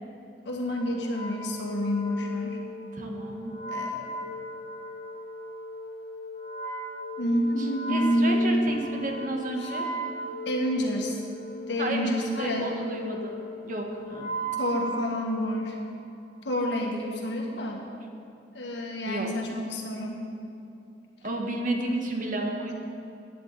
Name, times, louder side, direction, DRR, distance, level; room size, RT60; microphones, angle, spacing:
voice 1, 0.5-2.6 3.7-4.1 7.2-8.6 9.6-9.7 10.5-11.2 11.6-12.7 14.6-15.8 16.4-17.9 18.5-20.2, equal, 75° left, 0 dB, 1.9 m, -28 dB
Wind instrument woodwind instrument, 1.0-15.7, right 1 dB, 25° left, 2.7 m, -37 dB
voice 2, 2.9-3.5 7.6-9.9 11.8-14.3 19.1-19.6 21.2-22.7, right 1 dB, 50° right, 1 dB, 1.6 m, -32 dB
16.5 x 9.9 x 4.2 m, 2.8 s
head